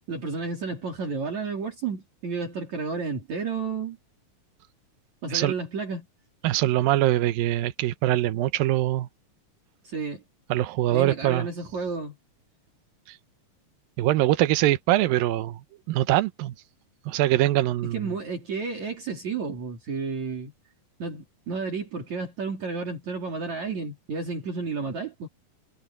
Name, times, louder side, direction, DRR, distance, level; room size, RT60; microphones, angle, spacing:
voice 1, 0.1-4.0 5.2-6.1 9.8-10.2 10.9-12.2 17.9-20.5 21.0-25.3, right 4 dB, 55° right, 4.4 m, -31 dB
voice 2, 6.4-9.1 10.5-11.5 14.0-15.6 15.9-16.5 17.1-18.1, right 15 dB, 85° right, 2.6 m, -23 dB
omnidirectional pair, 4.0 m